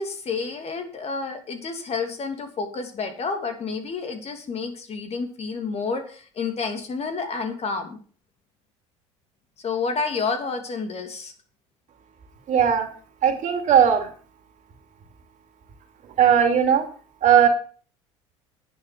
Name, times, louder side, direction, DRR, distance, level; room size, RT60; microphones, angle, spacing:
voice 1, 0.0-8.0 9.6-11.3, left 4 dB, 40° left, 6 dB, 2.9 m, -29 dB
voice 2, 12.5-12.9 13.2-14.1 16.2-16.8 17.2-17.5, right 8 dB, 50° right, 6 dB, 2.6 m, -18 dB
10.0 x 9.2 x 6.0 m, 0.42 s
hypercardioid pair, 70°, 16 cm